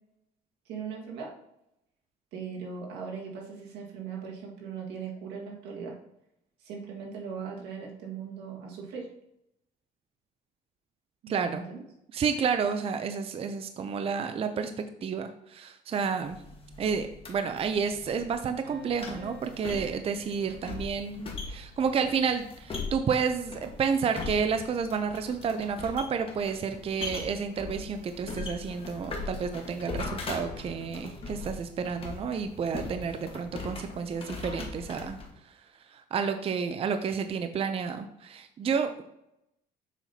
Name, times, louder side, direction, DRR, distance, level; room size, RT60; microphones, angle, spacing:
voice 1, 0.7-1.3 2.3-6.0 6.6-9.1 11.2-11.8, right 6 dB, 90° right, -1 dB, 1.8 m, -39 dB
voice 2, 11.3-11.6 12.1-16.4 16.8-35.2 35.5-35.6 35.9-39.1, right 6 dB, 35° right, 8 dB, 0.5 m, -30 dB
sound 1, 16.2-35.3, left 3 dB, 35° left, 1.4 m, -40 dB
sound 2, 18.6-21.5, equal, 70° right, 1.2 m, -50 dB
7.2 x 5.7 x 2.8 m, 0.80 s
cardioid pair, 110°, 17 cm